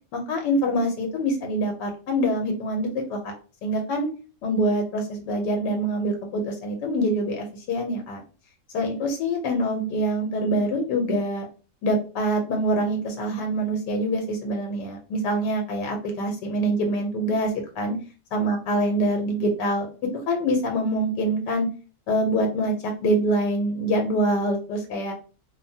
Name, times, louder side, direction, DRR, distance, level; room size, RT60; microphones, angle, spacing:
voice 1, 0.1-3.3 3.6-4.1 4.4-8.2 8.7-11.4 11.8-17.5 17.8-17.9 18.3-19.9 20.3-21.7 22.1-25.1, right 1 dB, 80° left, 3 dB, 1.2 m, -25 dB
3.3 x 2.0 x 2.6 m, 0.36 s
omnidirectional pair, 1.8 m